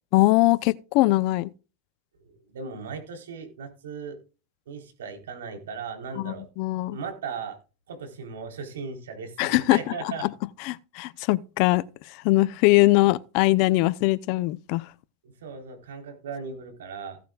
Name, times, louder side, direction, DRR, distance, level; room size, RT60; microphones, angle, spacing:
voice 1, 0.1-1.5 6.2-7.0 9.4-9.8 10.2-10.3 10.6-11.8 12.2-14.8, left 20 dB, 55° left, 0.7 m, -21 dB
voice 2, 2.2-4.2 4.7-6.5 6.9-7.6 7.9-10.2 15.2-17.2, right 5 dB, 85° right, 4.0 m, -37 dB
16.5 x 9.2 x 2.4 m
hypercardioid pair, 105°, 0 cm